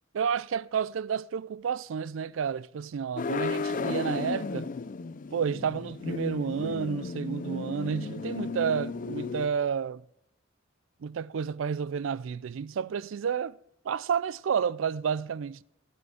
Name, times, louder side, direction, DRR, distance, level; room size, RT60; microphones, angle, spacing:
voice 1, 0.1-4.7 5.3-10.0 11.0-13.6 13.8-15.6, right 7 dB, 70° right, 0.4 m, -30 dB
sound 1, 3.2-9.5, left 4 dB, 40° left, 0.4 m, -34 dB
12.5 x 8.7 x 4.8 m
head